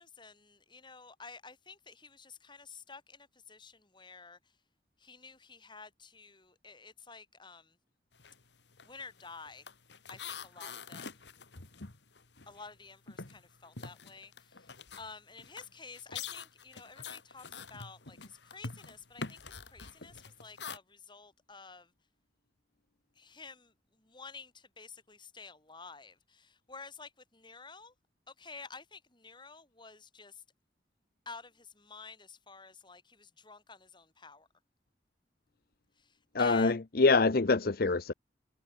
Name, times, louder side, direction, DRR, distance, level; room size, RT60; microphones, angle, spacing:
voice 1, 0.0-4.4 5.0-7.8 8.8-9.7 10.1-11.3 12.5-21.9 23.2-27.9 28.3-30.4 31.3-34.5 36.0-36.8, left 4 dB, 25° left, 7.4 m, -51 dB
sound 1, 8.1-8.4 8.7-12.8 13.1-20.8, left 5 dB, 75° left, 2.1 m, -45 dB
voice 2, 36.3-38.1, left 3 dB, 55° left, 0.8 m, -25 dB
head